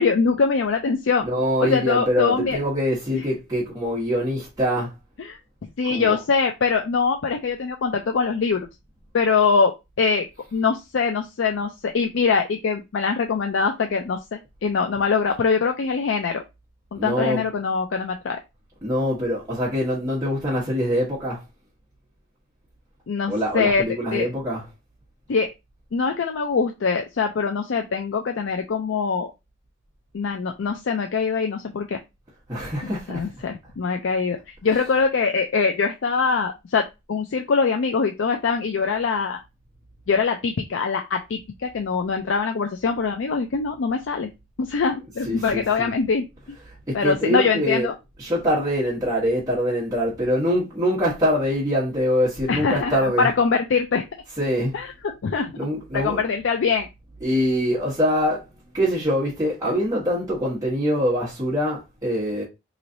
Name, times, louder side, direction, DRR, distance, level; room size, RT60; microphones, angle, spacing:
voice 1, 0.0-1.3 1.6-2.6 5.2-5.4 5.8-8.7 9.1-16.4 16.9-18.4 23.1-23.8 24.1-24.3 25.3-25.5 25.9-29.3 30.1-32.0 32.8-39.4 40.1-44.3 44.6-46.2 46.9-47.9 52.5-54.0 54.7-54.9 55.2-55.5 55.9-56.9, left 5 dB, 80° left, 0.4 m, -23 dB
voice 2, 1.2-4.9 5.8-6.2 16.9-17.4 18.8-21.4 23.3-24.6 32.5-33.3 34.7-34.8 45.2-45.9 46.6-47.9 48.2-53.3 54.4-54.8 55.6-56.2 57.2-62.4, equal, 20° right, 1.1 m, -24 dB
4.0 x 3.0 x 2.6 m
head